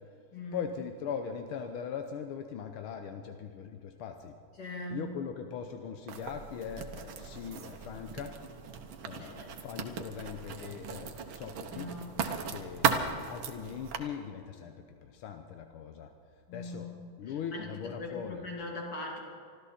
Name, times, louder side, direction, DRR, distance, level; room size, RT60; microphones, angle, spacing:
voice 1, 0.5-4.4 4.9-8.4 9.0-12.0 12.5-16.1 16.5-16.9 17.2-18.5, left 7 dB, 85° left, 6 dB, 1.7 m, -40 dB
voice 2, 4.6-5.1 9.2-9.5 11.7-12.1 16.5-17.0 17.5-19.2, left 2 dB, 50° left, -1 dB, 3.2 m, -40 dB
Writing, 6.1-14.0, right 6 dB, 70° right, 1.8 m, -36 dB
25.0 x 13.5 x 4.3 m, 2.5 s
omnidirectional pair, 2.3 m